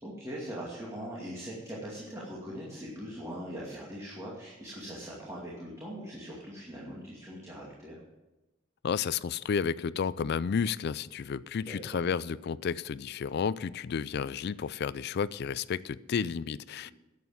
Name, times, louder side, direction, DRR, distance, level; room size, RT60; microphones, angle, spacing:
voice 1, 0.0-8.0 11.6-12.0 16.8-16.9, equal, 15° right, 2.4 m, -41 dB
voice 2, 8.8-16.9, left 6 dB, 55° left, 0.4 m, -32 dB
11.0 x 8.3 x 7.1 m
head